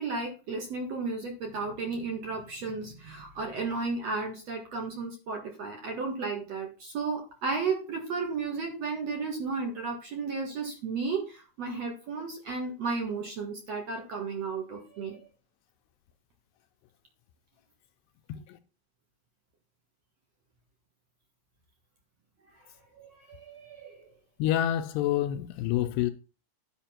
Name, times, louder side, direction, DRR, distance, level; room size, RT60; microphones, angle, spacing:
voice 1, 0.0-15.2 23.0-24.1, right 4 dB, 55° right, 1.9 m, -34 dB
voice 2, 24.4-26.1, left 12 dB, 80° left, 2.5 m, -27 dB
10.0 x 5.1 x 5.8 m
omnidirectional pair, 5.2 m